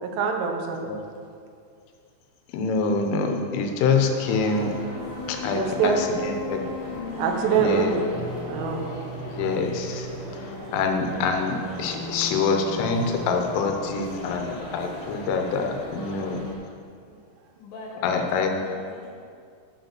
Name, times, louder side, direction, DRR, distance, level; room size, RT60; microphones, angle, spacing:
voice 1, 0.0-0.8 5.4-6.0 7.2-7.9 8.4-8.9, right 7 dB, 90° right, 3 dB, 3.7 m, -24 dB
voice 2, 2.5-4.7 5.3-6.7 7.6-7.9 9.3-10.1 10.7-16.4 18.0-18.5, left 4 dB, 85° left, 4 dB, 3.5 m, -25 dB
sound 1, 4.2-16.5, left 1 dB, 40° left, 3.0 m, -36 dB
voice 3, 17.6-19.1, left 2 dB, 60° left, -3 dB, 2.8 m, -40 dB
11.0 x 8.1 x 6.0 m, 2.3 s
omnidirectional pair, 5.6 m